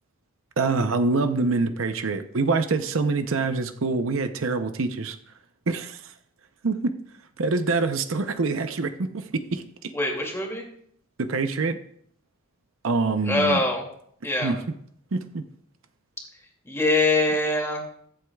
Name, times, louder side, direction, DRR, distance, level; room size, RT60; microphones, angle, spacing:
voice 1, 0.6-5.2 5.7-6.1 6.6-6.9 7.4-9.9 11.2-11.8 12.8-13.6 14.4-14.6 15.1-15.4, right 3 dB, 70° right, 8 dB, 0.7 m, -25 dB
voice 2, 9.9-10.6 13.3-13.9 14.2-14.5 16.6-17.8, left 2 dB, 15° left, 0 dB, 2.5 m, -23 dB
23.0 x 7.8 x 2.3 m, 0.66 s
head